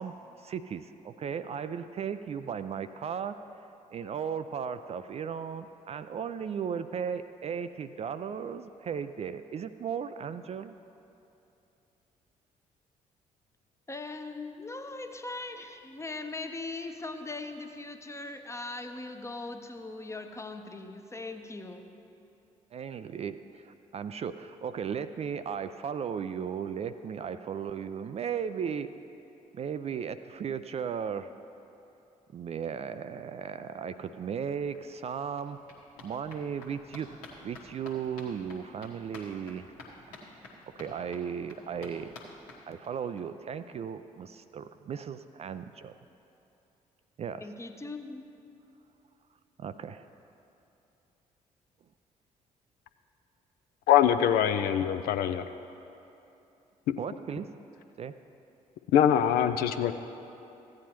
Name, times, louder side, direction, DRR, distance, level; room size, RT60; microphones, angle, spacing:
voice 1, 0.0-3.4 3.9-10.8 22.7-28.9 29.5-31.3 32.3-35.6 36.0-37.2 37.4-39.7 40.1-40.2 40.8-42.1 42.7-45.9 47.2-47.5 49.6-50.1 57.0-57.5 58.0-58.1, right 7 dB, 35° right, 11 dB, 0.4 m, -36 dB
voice 2, 13.9-21.9 47.4-48.3, left 3 dB, 15° left, 6 dB, 0.8 m, -40 dB
sound 1, 34.7-43.2 43.5-43.6 43.9-44.0 44.2-44.3, left 2 dB, 75° left, 1.3 m, -51 dB
voice 3, 53.9-55.4 58.9-59.9, left 9 dB, 55° left, 9 dB, 0.4 m, -23 dB
15.0 x 9.6 x 3.0 m, 2.8 s
figure-of-eight pair, 45°, 19 cm